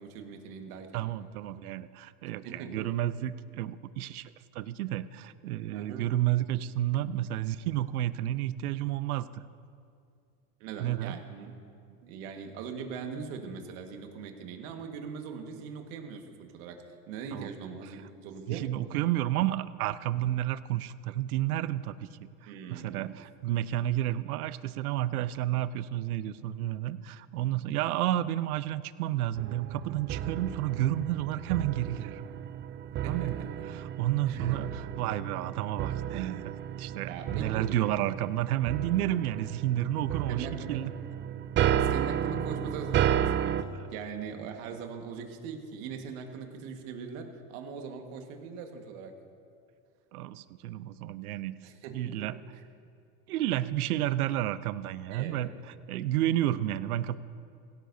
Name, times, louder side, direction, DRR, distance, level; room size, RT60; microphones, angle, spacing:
voice 1, 0.0-1.1 2.4-2.9 5.7-6.1 10.6-11.5 12.1-18.6 22.5-23.1 33.0-33.5 34.3-34.6 37.1-37.7 40.3-40.8 41.8-49.2 51.6-51.9 52.2-52.6 55.1-55.6, right 6 dB, 65° right, 5 dB, 1.7 m, -41 dB
voice 2, 0.9-9.4 10.8-11.2 17.3-17.5 18.5-32.2 33.0-40.9 50.1-51.5 51.9-52.4 53.3-55.5 55.9-57.2, right 13 dB, 80° right, 16 dB, 0.6 m, -31 dB
sound 1, 29.4-43.6, right 10 dB, 25° right, 0.4 m, -33 dB
17.0 x 16.5 x 2.7 m, 2.4 s
hypercardioid pair, 95°, 43 cm